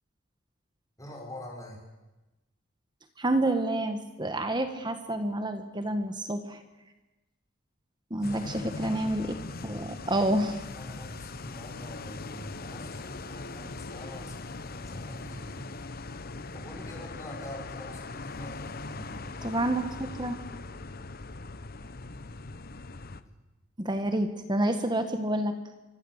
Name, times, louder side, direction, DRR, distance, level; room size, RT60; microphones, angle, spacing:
voice 1, 1.0-1.8 8.2-9.0 10.7-15.7 16.5-19.5 23.2-23.3, left 1 dB, 15° left, -2 dB, 6.7 m, -45 dB
voice 2, 3.2-6.6 8.1-9.2 9.6-10.6 19.4-20.4 23.8-25.5, right 1 dB, 25° right, 8 dB, 1.7 m, -28 dB
sound 1, 8.2-23.2, left 3 dB, 50° left, 1.1 m, -40 dB
25.0 x 24.5 x 8.3 m, 1.1 s
head